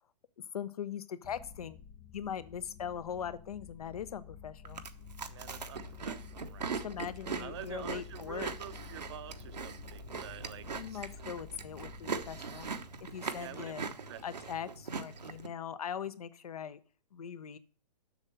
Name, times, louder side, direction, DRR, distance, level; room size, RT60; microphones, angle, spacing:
voice 1, 0.5-1.8 2.1-4.8 6.7-8.5 10.7-12.7 13.0-13.8 14.2-16.8 17.1-17.6, left 8 dB, 60° left, 0.8 m, -41 dB
sound 1, 1.2-14.1, left 7 dB, 25° left, 0.5 m, -51 dB
Chewing mastication, 4.6-15.5, right 5 dB, 75° right, 1.0 m, -41 dB
voice 2, 5.3-6.9 7.4-11.1 13.3-14.2, right 11 dB, 40° right, 0.7 m, -48 dB
7.3 x 6.5 x 6.1 m
figure-of-eight pair, 120°, 21 cm